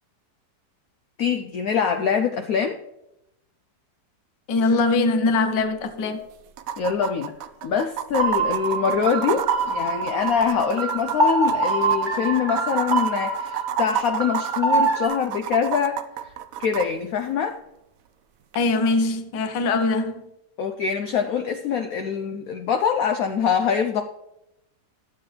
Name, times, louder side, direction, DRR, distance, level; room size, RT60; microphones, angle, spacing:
voice 1, 1.2-2.8 6.8-7.3 7.6-16.0 16.6-17.6 20.6-24.0, left 7 dB, 65° left, 0.9 m, -24 dB
voice 2, 4.5-6.2 18.5-20.2, left 3 dB, 80° left, 1.5 m, -22 dB
sound 1, 5.5-5.6 5.8-5.9 6.6-16.9 18.5-18.6, right 11 dB, 70° right, 0.8 m, -30 dB
sound 2, 8.2-15.1, right 3 dB, 35° right, 1.1 m, -25 dB
12.0 x 7.8 x 3.2 m
omnidirectional pair, 1.9 m